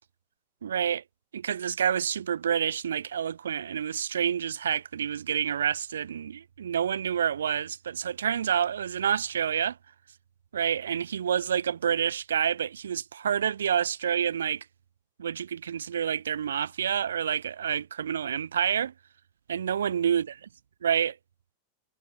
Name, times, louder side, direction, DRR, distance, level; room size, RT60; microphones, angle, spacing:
voice 1, 0.6-1.0 1.3-9.8 10.5-14.6 15.2-18.9 19.5-20.3 20.8-21.2, right 8 dB, 65° right, 0.9 m, -28 dB
figure-of-eight pair, 90°, 0 cm